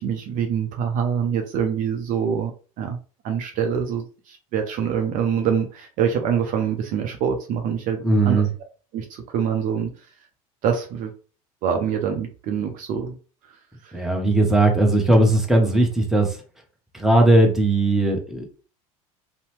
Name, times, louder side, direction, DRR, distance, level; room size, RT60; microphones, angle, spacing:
voice 1, 0.0-2.5 2.8-3.0 3.2-8.4 8.9-9.9 10.6-11.1 11.6-13.2 13.8-13.9, right 7 dB, 45° right, 4 dB, 0.5 m, -25 dB
voice 2, 8.0-8.5 13.9-16.4 16.9-18.5, right 2 dB, ahead, 1 dB, 0.8 m, -18 dB
2.7 x 2.0 x 3.0 m, 0.36 s
figure-of-eight pair, 70°, 19 cm